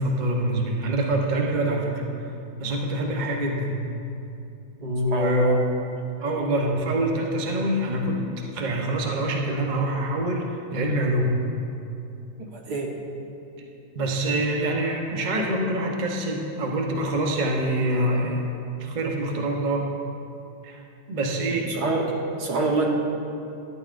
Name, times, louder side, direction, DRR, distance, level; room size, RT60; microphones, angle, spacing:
voice 1, 0.0-2.0 2.6-3.7 4.8-5.6 6.2-11.3 13.9-18.4 18.8-19.9 20.6-20.8 21.1-21.7, right 1 dB, 40° right, 0 dB, 0.7 m, -25 dB
voice 2, 5.1-5.6 12.5-12.9 21.7-22.9, right 3 dB, 65° right, -1 dB, 1.6 m, -26 dB
12.5 x 11.0 x 2.5 m, 2.7 s
omnidirectional pair, 1.9 m